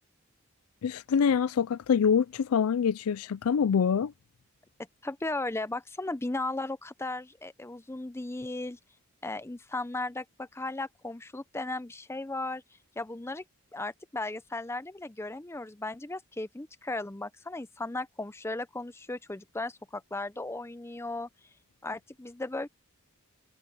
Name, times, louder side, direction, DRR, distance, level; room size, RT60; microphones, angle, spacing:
voice 1, 0.8-4.1, left 7 dB, 80° left, 0.4 m, -25 dB
voice 2, 5.0-8.8 9.2-12.6 13.0-13.4 13.7-21.3 21.8-22.7, left 2 dB, 10° left, 0.6 m, -36 dB
head